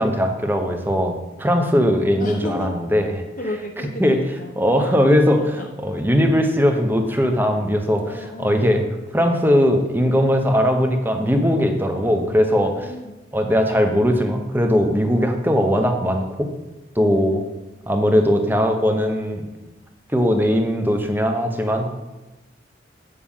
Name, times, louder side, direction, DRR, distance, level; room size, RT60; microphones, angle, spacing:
voice 1, 0.0-3.2 4.0-4.2 4.6-8.9 9.1-12.9 13.3-16.5 16.9-17.4 17.9-19.5 20.1-21.9, equal, 10° right, 5 dB, 0.9 m, -19 dB
voice 2, 2.2-2.7 3.4-4.5 5.4-5.7 8.0-8.7 12.5-13.2 17.0-17.5, left 2 dB, 45° left, 2 dB, 0.8 m, -33 dB
8.6 x 6.8 x 5.6 m, 1.1 s
head